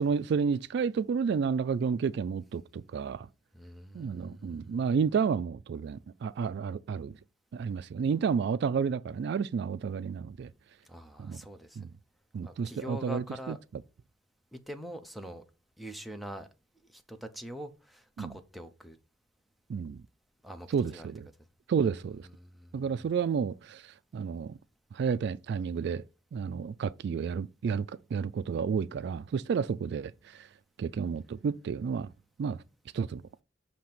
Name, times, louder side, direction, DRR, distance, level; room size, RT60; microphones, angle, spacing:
voice 1, 0.0-3.3 3.9-7.1 7.5-10.5 11.2-11.4 11.8-11.9 12.3-13.6 18.2-18.3 19.7-20.0 20.7-21.3 21.7-22.3 22.7-23.8 24.1-24.6 24.9-26.0 26.3-30.5 30.8-32.1 32.4-32.6 32.9-33.2, right 6 dB, 65° right, 0.3 m, -31 dB
voice 2, 3.5-4.9 10.8-11.9 12.4-13.6 14.5-15.4 15.8-16.5 16.8-19.0 20.4-21.1 21.8-22.1 22.3-23.0, equal, ahead, 0.7 m, -44 dB
7.0 x 2.8 x 5.8 m
head